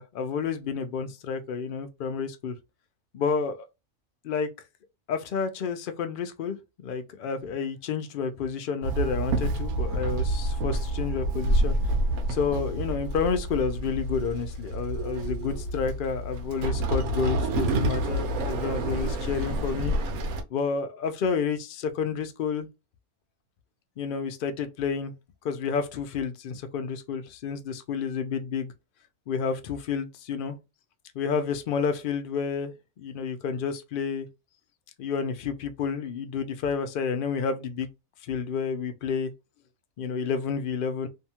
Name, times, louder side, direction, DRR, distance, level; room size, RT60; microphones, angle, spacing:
voice 1, 0.0-2.5 3.1-3.7 4.2-4.5 5.1-11.9 12.3-19.9 20.5-22.7 24.0-25.1 25.4-28.7 29.3-30.6 31.1-34.3 35.0-37.9 38.2-39.3 40.0-41.1, left 6 dB, 70° left, 0.5 m, -30 dB
Walk footsteps / Chatter / Hiss, 8.8-20.4, right 1 dB, 85° right, 1.1 m, -28 dB
2.7 x 2.2 x 2.8 m
omnidirectional pair, 1.4 m